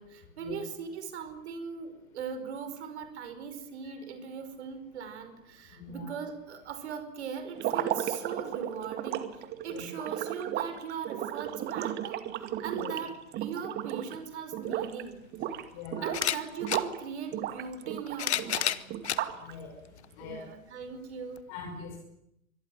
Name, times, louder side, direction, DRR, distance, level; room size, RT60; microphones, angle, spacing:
voice 1, 0.0-9.3 9.6-15.2 16.0-19.0 20.2-21.4, right 6 dB, 55° right, 10 dB, 5.2 m, -40 dB
voice 2, 5.8-6.1 9.7-10.1 12.7-13.0 15.7-16.1 19.4-19.7 20.2-20.4 21.5-22.0, left 4 dB, 35° left, 2 dB, 5.8 m, -42 dB
sound 1, 7.5-14.2 14.5-15.0 15.3-17.0 17.3-19.5, right 11 dB, 25° right, 2.2 m, -34 dB
sound 2, 14.7-14.8 16.1-16.9 17.9-19.2 20.0-20.1 21.4-21.5, left 11 dB, 55° left, 1.5 m, -30 dB
25.0 x 22.0 x 9.3 m, 0.79 s
figure-of-eight pair, 110°, 40 cm